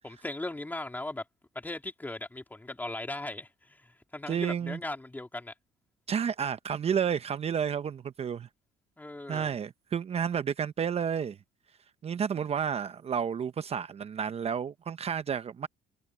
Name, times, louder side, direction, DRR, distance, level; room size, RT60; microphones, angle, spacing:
voice 1, 0.0-1.2 1.5-5.5 9.0-9.5, left 2 dB, 10° left, 3.7 m, -38 dB
voice 2, 4.3-4.8 6.1-8.5 9.3-11.4 12.0-15.7, right 7 dB, 35° right, 0.8 m, -31 dB
cardioid pair, 110°, 17 cm